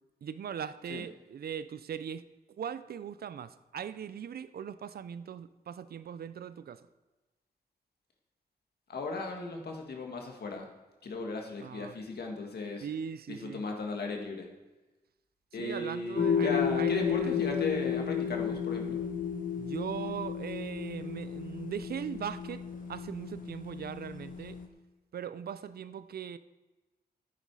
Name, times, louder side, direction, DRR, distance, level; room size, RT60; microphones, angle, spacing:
voice 1, 0.2-6.8 11.6-11.9 12.8-13.6 15.6-17.4 19.6-22.6 22.9-24.6 25.1-26.4, right 8 dB, 65° right, 14 dB, 0.5 m, -40 dB
voice 2, 8.9-10.7 11.0-12.9 13.3-14.5 15.5-19.0, left 3 dB, 70° left, 2 dB, 1.8 m, -37 dB
sound 1, 16.1-24.7, left 7 dB, 55° left, 1.2 m, -33 dB
14.5 x 9.7 x 4.8 m, 1.1 s
wide cardioid pair, 145°, 17 cm